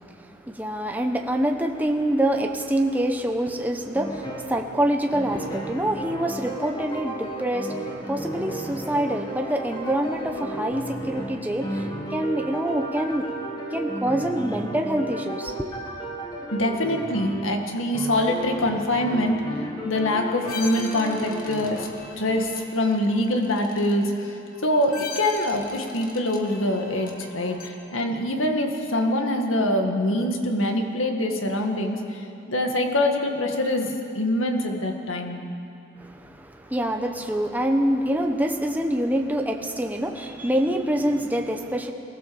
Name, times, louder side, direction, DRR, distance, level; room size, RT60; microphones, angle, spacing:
voice 1, 0.0-13.3 13.7-15.7 36.0-41.9, right 1 dB, 10° right, 3 dB, 1.0 m, -26 dB
sound 1, 3.9-4.6 5.1-17.6 17.9-21.9, right 1 dB, 20° left, 1.9 m, -33 dB
voice 2, 16.5-19.5 19.8-21.9 22.2-24.4 24.6-35.4, left 1 dB, 85° left, 3 dB, 2.0 m, -24 dB
sound 2, 20.5-27.7, left 4 dB, 45° left, 1.8 m, -40 dB
23.0 x 16.0 x 7.1 m, 2.7 s
head